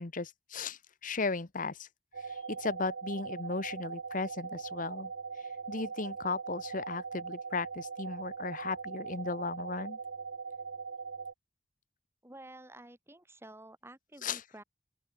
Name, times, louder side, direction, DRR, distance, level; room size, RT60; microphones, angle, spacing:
voice 1, 0.0-1.9 2.3-5.1 5.7-10.0 14.2-14.4, left 4 dB, 45° left, 1.2 m, -36 dB
sound 1, 2.1-11.3, right 5 dB, 90° right, 0.8 m, -41 dB
voice 2, 12.2-14.6, right 1 dB, 15° right, 8.0 m, -51 dB
open air
head